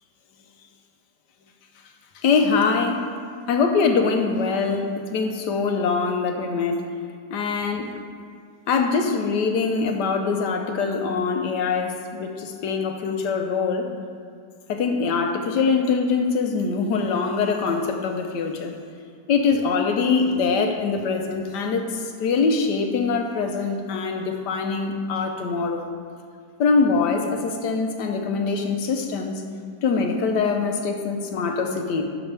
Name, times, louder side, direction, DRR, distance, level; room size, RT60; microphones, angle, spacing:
voice 1, 2.1-3.1 3.5-6.9 7.3-8.0 8.7-13.9 14.7-18.7 19.3-25.8 26.6-29.4 29.8-32.0, left 4 dB, 80° left, 4 dB, 1.4 m, -23 dB
12.0 x 6.3 x 3.4 m, 2.1 s
omnidirectional pair, 1.8 m